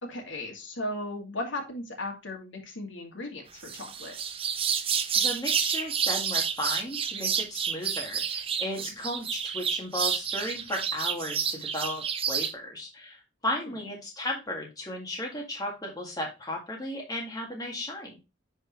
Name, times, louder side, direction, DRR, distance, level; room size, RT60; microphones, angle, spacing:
voice 1, 0.0-4.1 8.7-8.9, left 1 dB, 75° left, 1 dB, 2.4 m, -36 dB
sound 1, 3.6-12.5, right 7 dB, 30° right, 0.6 m, -29 dB
voice 2, 5.2-18.2, left 1 dB, 20° left, -1 dB, 1.8 m, -35 dB
10.0 x 4.4 x 3.2 m, 0.26 s
head